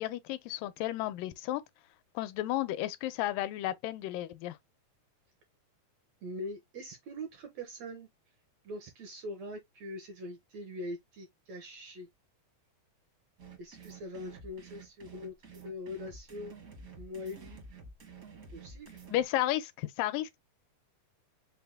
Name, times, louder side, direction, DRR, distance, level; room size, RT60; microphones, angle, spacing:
voice 1, 0.0-1.6 2.2-4.6 19.1-20.4, left 14 dB, 85° left, 2.2 m, -33 dB
voice 2, 6.2-8.1 8.6-12.1 13.6-16.5 17.0-17.6 18.5-19.0, left 1 dB, 75° right, 1.7 m, -42 dB
sound 1, 13.4-19.2, right 4 dB, 60° right, 0.9 m, -50 dB
5.5 x 2.1 x 3.4 m
omnidirectional pair, 3.9 m